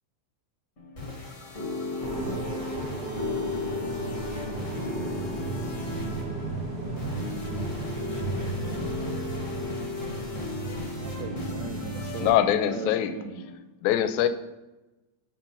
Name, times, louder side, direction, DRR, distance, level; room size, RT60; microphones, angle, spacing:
sound 1, 0.8-13.6, left 3 dB, 35° left, 1.4 m, -35 dB
sound 2, 2.0-12.3, right 3 dB, 35° right, 0.7 m, -35 dB
voice 1, 8.0-10.6, left 2 dB, 60° left, -3 dB, 1.0 m, -49 dB
voice 2, 11.0-13.5, right 6 dB, 80° right, 9 dB, 1.7 m, -38 dB
voice 3, 12.2-13.1 13.8-14.3, left 11 dB, 85° left, 11 dB, 2.0 m, -23 dB
7.3 x 5.4 x 5.6 m, 1.0 s
omnidirectional pair, 3.4 m